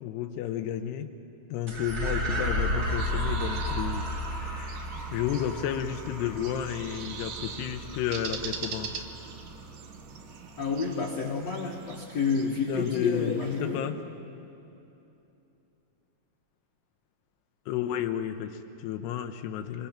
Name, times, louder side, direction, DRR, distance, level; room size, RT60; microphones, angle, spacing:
voice 1, 0.0-1.1 1.5-4.8 5.1-9.0 12.7-13.9 17.7-19.9, left 10 dB, 85° left, 6 dB, 2.9 m, -32 dB
sound 1, 1.7-10.3, equal, 40° right, 1.4 m, -33 dB
sound 2, 3.0-13.8, right 6 dB, 65° right, 2.4 m, -43 dB
voice 2, 10.6-13.9, left 5 dB, 55° left, -2 dB, 2.1 m, -29 dB
27.0 x 24.0 x 5.9 m, 2.9 s
omnidirectional pair, 4.7 m